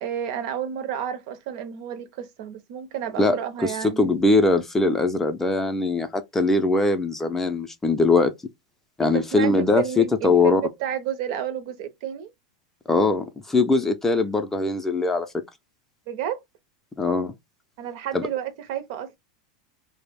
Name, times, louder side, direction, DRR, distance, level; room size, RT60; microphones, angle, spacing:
voice 1, 0.0-4.0 9.0-12.3 16.1-16.4 17.8-19.2, right 9 dB, 60° right, 0.5 m, -31 dB
voice 2, 3.2-8.3 9.0-10.6 12.9-15.3 17.0-17.3 18.1-18.2, left 3 dB, 10° left, 0.4 m, -21 dB
2.3 x 2.0 x 3.3 m
supercardioid pair, 135°, 3 cm